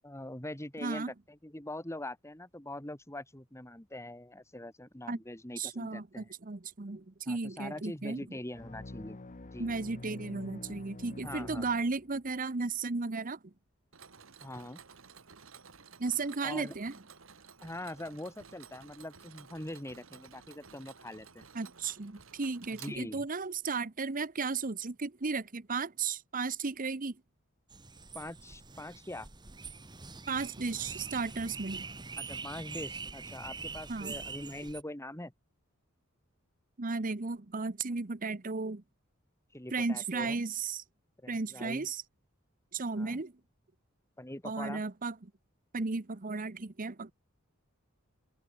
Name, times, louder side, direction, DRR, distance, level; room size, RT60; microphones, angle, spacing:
voice 1, 0.0-6.3 7.3-9.2 9.5-9.8 11.2-11.7 14.4-14.8 16.4-16.8 17.6-21.5 22.7-23.3 28.1-29.3 32.2-35.3 39.5-40.4 41.2-41.9 43.0-43.2 44.2-44.8, left 1 dB, 15° left, 2.6 m, -43 dB
voice 2, 0.8-1.1 5.1-5.2 5.6-8.2 9.6-13.4 16.0-16.9 21.5-27.2 30.3-31.9 33.9-34.2 36.8-38.8 39.7-40.8 41.3-42.0 42.7-43.3 44.4-45.2 45.7-47.1, right 4 dB, 45° right, 1.0 m, -34 dB
sound 1, 8.5-12.4, left 2 dB, 40° left, 0.9 m, -47 dB
Mechanisms, 13.9-23.5, right 6 dB, 80° right, 2.0 m, -54 dB
sound 2, 27.7-34.8, right 4 dB, 20° right, 1.5 m, -44 dB
open air
head